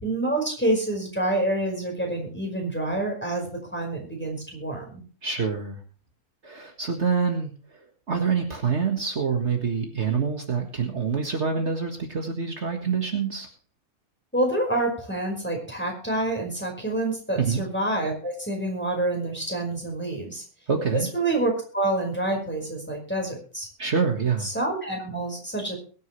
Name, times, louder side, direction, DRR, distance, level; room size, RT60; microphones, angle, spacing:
voice 1, 0.0-5.0 14.3-20.4 20.9-23.7 24.4-25.8, right 1 dB, 5° left, 0 dB, 5.0 m, -27 dB
voice 2, 5.2-5.8 6.4-7.5 8.1-13.5 17.4-17.6 20.7-21.1 23.8-24.5, right 5 dB, 50° right, 3 dB, 1.9 m, -26 dB
22.5 x 9.3 x 3.2 m, 0.39 s
omnidirectional pair, 1.5 m